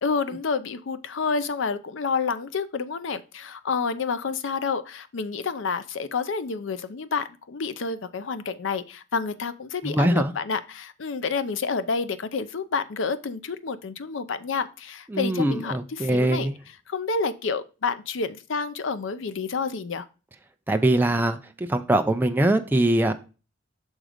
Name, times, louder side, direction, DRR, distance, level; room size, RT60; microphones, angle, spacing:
voice 1, 0.0-16.5 16.9-20.0, left 5 dB, 65° left, 0.6 m, -29 dB
voice 2, 9.8-10.3 15.1-16.5 20.7-21.4 21.7-23.1, right 1 dB, 10° right, 0.4 m, -22 dB
6.3 x 3.8 x 5.0 m
head